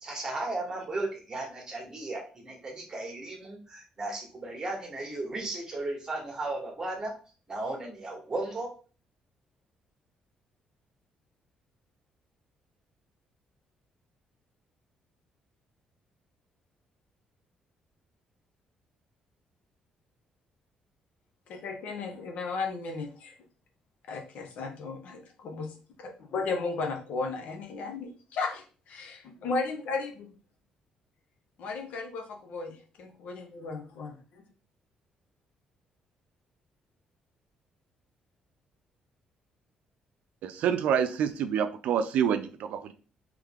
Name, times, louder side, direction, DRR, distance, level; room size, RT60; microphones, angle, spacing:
voice 1, 0.0-7.1 7.5-8.7, right 2 dB, 25° right, 1 dB, 1.6 m, -35 dB
voice 2, 21.5-23.3 24.1-30.3 31.6-34.4, left 4 dB, 70° left, 4 dB, 0.9 m, -35 dB
voice 3, 40.4-42.9, right 8 dB, 80° right, 9 dB, 0.4 m, -27 dB
3.6 x 3.2 x 3.6 m, 0.38 s
cardioid pair, 110°, 2 cm